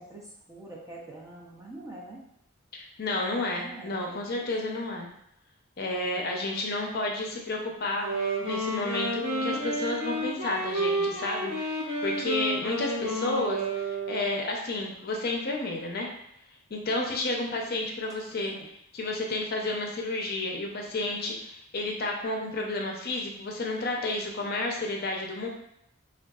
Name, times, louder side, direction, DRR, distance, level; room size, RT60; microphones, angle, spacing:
voice 1, 0.0-2.2 3.5-4.5 18.5-18.7, right 2 dB, 15° right, -3 dB, 0.4 m, -45 dB
voice 2, 2.7-5.1 5.8-8.1 8.4-16.1 16.7-18.5 18.9-25.5, left 2 dB, 45° left, 0 dB, 0.5 m, -31 dB
Wind instrument woodwind instrument, 7.9-14.4, right 1 dB, 65° right, 1.1 m, -31 dB
3.6 x 2.3 x 2.3 m, 0.75 s
head